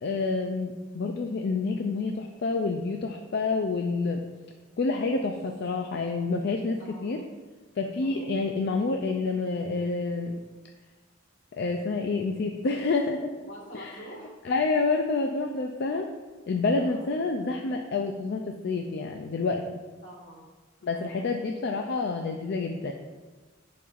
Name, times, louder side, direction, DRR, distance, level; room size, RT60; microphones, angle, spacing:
voice 1, 0.0-4.2 4.8-7.2 7.8-10.4 11.5-13.3 13.7-14.0 14.4-16.1 16.5-19.6 20.8-22.9, left 3 dB, 55° left, 3 dB, 0.4 m, -28 dB
voice 2, 6.8-7.3 8.0-8.4 13.4-14.3 16.7-17.0 20.0-20.5 20.8-21.3, equal, 80° left, -3 dB, 1.8 m, -46 dB
10.5 x 4.2 x 2.5 m, 1.3 s
head